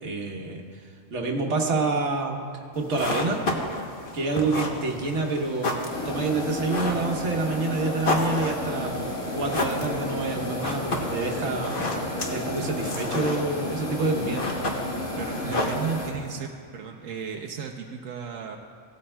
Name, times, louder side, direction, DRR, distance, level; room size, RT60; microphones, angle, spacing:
voice 1, 0.0-0.6 1.1-2.4 2.7-3.5 4.1-5.8 6.0-8.9 9.4-11.8 12.3-14.4, right 3 dB, 65° right, 1 dB, 1.4 m, -27 dB
sound 1, 2.7-16.3, left 2 dB, 45° left, 1.1 m, -32 dB
sound 2, 5.9-16.1, left 1 dB, 80° left, 2.3 m, -32 dB
voice 2, 15.2-18.6, right 7 dB, 85° right, 1 dB, 1.1 m, -34 dB
17.0 x 12.5 x 2.2 m, 2.4 s
omnidirectional pair, 1.3 m